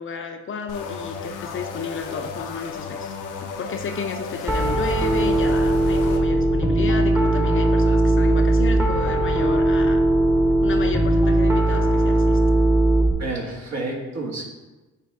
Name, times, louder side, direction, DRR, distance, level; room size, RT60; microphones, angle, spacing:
voice 1, 0.0-3.2 3.4-10.0 10.6-12.4, left 5 dB, 45° left, 5 dB, 0.6 m, -32 dB
sound 1, 0.7-6.2, left 5 dB, 90° left, 0.7 m, -34 dB
Piano, 4.5-13.1, right 1 dB, 10° right, 0.9 m, -19 dB
voice 2, 13.2-14.4, right 2 dB, 60° right, 0 dB, 1.4 m, -29 dB
8.9 x 3.3 x 3.7 m, 1.2 s
cardioid pair, 90°, 30 cm